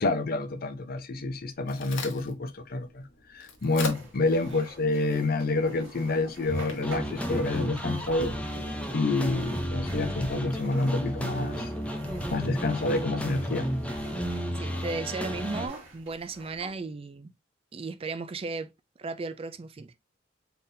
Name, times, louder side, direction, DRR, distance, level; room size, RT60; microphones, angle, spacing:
voice 1, 0.0-3.1 3.3-8.3 8.9-11.7 12.3-13.7, left 2 dB, 50° left, 0.6 m, -28 dB
Crack, 1.3-8.2, left 3 dB, 75° left, 1.1 m, -43 dB
sound 1, 3.6-16.8, equal, 85° right, 2.0 m, -47 dB
sound 2, 6.5-15.7, equal, 5° left, 0.7 m, -33 dB
voice 2, 14.6-17.3 17.7-18.7 19.0-19.9, right 3 dB, 30° right, 0.4 m, -35 dB
3.9 x 3.6 x 2.7 m
head